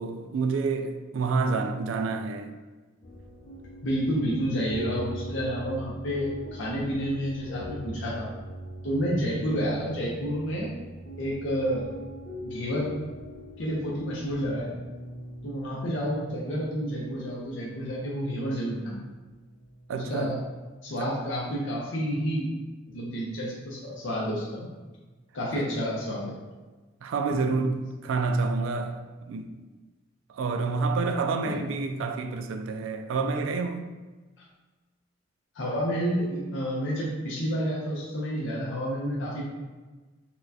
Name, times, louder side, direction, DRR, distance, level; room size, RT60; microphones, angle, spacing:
voice 1, 0.0-2.5 19.9-20.4 21.0-21.2 27.0-29.0 29.3-29.5 30.3-33.9, right 4 dB, 85° right, 0.3 m, -28 dB
sound 1, 3.0-20.8, right 1 dB, 30° left, 0.5 m, -42 dB
voice 2, 3.8-8.3 8.8-10.8 11.2-11.9 12.4-12.9 13.6-14.7 15.4-19.0 19.9-20.4 20.8-22.5 22.9-24.7 25.3-26.4 31.4-31.6 35.5-39.4, equal, 70° left, 0.6 m, -30 dB
4.2 x 2.3 x 2.7 m
head